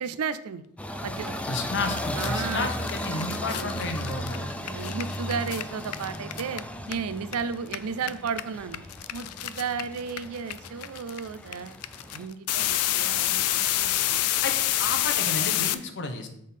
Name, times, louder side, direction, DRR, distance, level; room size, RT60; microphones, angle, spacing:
voice 1, 0.0-0.6 1.0-1.4 2.2-2.7 3.1-3.9 4.4-8.8 9.1-11.8 12.1-14.3, right 6 dB, 75° right, 15 dB, 0.4 m, -34 dB
sound 1, 0.8-12.3, left 1 dB, 5° left, 0.4 m, -36 dB
voice 2, 1.5-4.4 14.4-16.3, left 3 dB, 55° left, 6 dB, 0.9 m, -32 dB
sound 2, 1.6-1.7 1.8-7.3 7.6-15.7, left 13 dB, 90° left, 0.4 m, -28 dB
6.5 x 3.7 x 5.6 m, 0.77 s
head